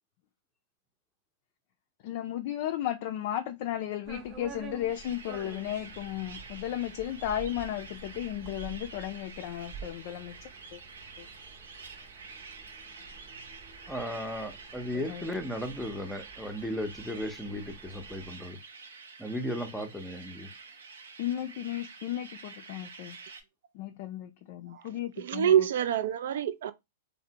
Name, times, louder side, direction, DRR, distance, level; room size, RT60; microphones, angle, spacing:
voice 1, 2.0-10.8 11.2-11.3 14.9-15.3 21.2-23.2 23.7-25.5, left 12 dB, 50° left, 0.3 m, -35 dB
sound 1, 4.1-18.3, right 5 dB, 35° right, 0.7 m, -49 dB
sound 2, 4.9-23.4, right 4 dB, 85° right, 0.7 m, -48 dB
voice 2, 13.9-18.6 19.2-20.5, equal, 5° left, 0.6 m, -35 dB
voice 3, 25.2-26.7, right 9 dB, 70° right, 0.3 m, -26 dB
3.2 x 2.0 x 2.8 m
hypercardioid pair, 125°, 0 cm